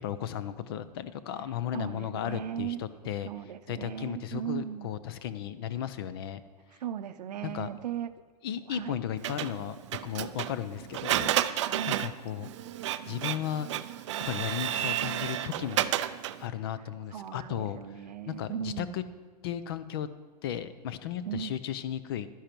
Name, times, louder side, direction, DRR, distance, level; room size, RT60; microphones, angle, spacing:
voice 1, 0.0-3.3 3.7-6.4 7.4-7.7 8.4-9.8 10.0-11.3 11.8-12.5 13.0-13.7 14.2-15.9 16.4-17.8 18.3-19.0 19.4-20.1 20.4-22.3, left 10 dB, 35° left, 14 dB, 0.5 m, -35 dB
voice 2, 1.7-2.8 3.2-4.9 6.8-8.1 8.7-9.0 11.6-12.1 17.1-19.0 21.3-21.6, right 9 dB, 75° right, 12 dB, 0.7 m, -37 dB
Printer, 9.2-16.5, right 12 dB, 45° right, 0.4 m, -32 dB
11.5 x 10.5 x 4.5 m, 1.5 s
hypercardioid pair, 160°, 21 cm